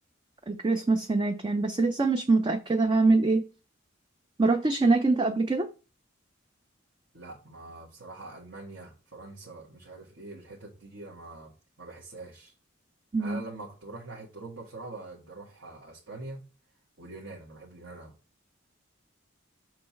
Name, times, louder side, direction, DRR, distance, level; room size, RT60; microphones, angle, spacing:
voice 1, 0.5-3.4 4.4-5.7 13.1-13.4, right 3 dB, 25° right, 0.4 m, -24 dB
voice 2, 7.1-11.5 11.8-12.5 13.2-16.4 17.0-18.1, right 2 dB, 60° right, 1.5 m, -44 dB
6.6 x 3.1 x 5.7 m
head